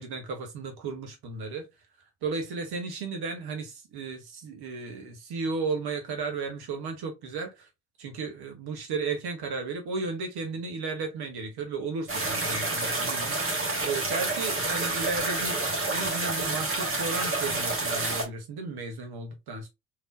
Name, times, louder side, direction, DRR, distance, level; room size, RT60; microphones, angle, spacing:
voice 1, 0.0-1.7 2.2-7.7 8.0-13.4 13.8-15.6 15.9-19.7, right 4 dB, 50° right, 1.0 m, -34 dB
sound 1, 12.1-18.2, right 2 dB, 25° right, 1.3 m, -29 dB
3.5 x 2.7 x 2.5 m
figure-of-eight pair, 45°, 49 cm